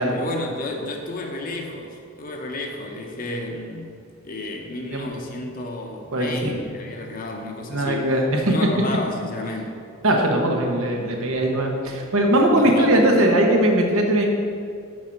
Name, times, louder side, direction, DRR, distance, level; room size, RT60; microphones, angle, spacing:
voice 1, 0.0-4.0 4.2-8.1 8.5-9.8 12.6-13.0, left 2 dB, 40° left, 2 dB, 0.7 m, -32 dB
voice 2, 6.1-6.5 7.7-8.2 10.0-14.3, right 1 dB, 80° right, 1 dB, 1.0 m, -20 dB
6.4 x 4.7 x 5.9 m, 2.3 s
head